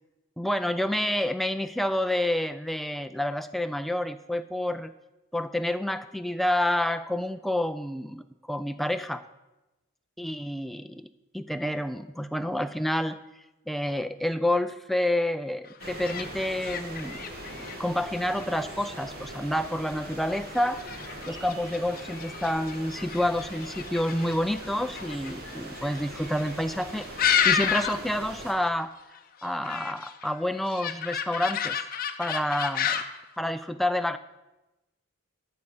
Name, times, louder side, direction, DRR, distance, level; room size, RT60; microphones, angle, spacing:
voice 1, 0.4-4.9 5.3-9.3 10.2-13.2 13.7-17.2 17.6-20.8 21.3-27.1 27.4-28.9 29.4-31.8 32.2-33.0 33.4-34.2, left 1 dB, ahead, 10 dB, 0.3 m, -29 dB
sound 1, 15.7-28.2 28.4-28.8 29.2-33.2, left 8 dB, 40° left, 0.7 m, -32 dB
sound 2, 15.8-28.5, right 1 dB, 45° right, 1.6 m, -41 dB
12.5 x 5.6 x 6.5 m, 1.0 s
head